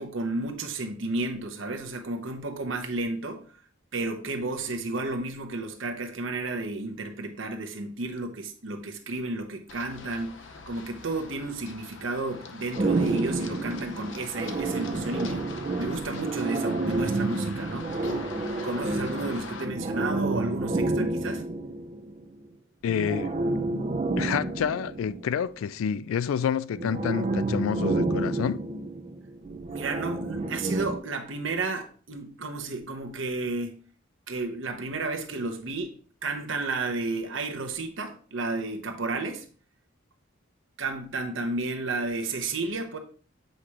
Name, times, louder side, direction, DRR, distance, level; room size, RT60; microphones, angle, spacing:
voice 1, 0.0-3.5 3.9-15.5 15.8-18.3 18.6-21.5 29.7-33.8 34.3-35.9 36.2-39.5 40.8-43.0, right 2 dB, 65° right, 1.0 m, -32 dB
Run, 9.7-19.6, left 4 dB, 65° left, 0.7 m, -43 dB
sound 1, 12.7-22.4 22.9-25.5 26.7-31.0, right 2 dB, 30° right, 0.5 m, -29 dB
voice 2, 22.8-23.3 24.2-28.6, left 8 dB, 80° left, 0.3 m, -28 dB
7.8 x 4.9 x 2.9 m
head